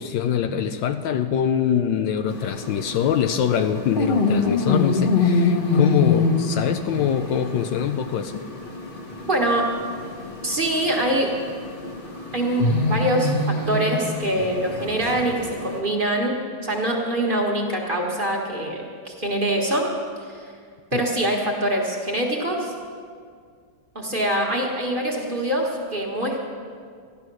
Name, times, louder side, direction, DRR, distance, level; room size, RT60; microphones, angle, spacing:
voice 1, 0.0-8.5 20.9-21.0, left 9 dB, 75° left, 8 dB, 1.3 m, -24 dB
sound 1, 2.3-15.8, left 3 dB, 30° left, 1.2 m, -25 dB
voice 2, 9.3-9.7 10.4-11.3 12.3-19.9 20.3-20.4 20.9-22.7 23.9-26.4, right 1 dB, 25° right, -1 dB, 1.6 m, -24 dB
14.0 x 11.5 x 6.2 m, 2.1 s
omnidirectional pair, 2.2 m